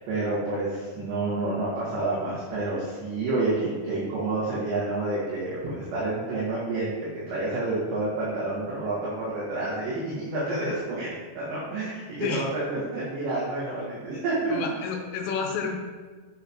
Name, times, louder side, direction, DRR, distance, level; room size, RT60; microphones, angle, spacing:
voice 1, 0.0-14.8, right 2 dB, 70° right, -9 dB, 3.6 m, -29 dB
voice 2, 14.5-15.8, left 5 dB, 80° left, 2 dB, 2.8 m, -30 dB
9.9 x 5.8 x 2.9 m, 1.4 s
omnidirectional pair, 5.4 m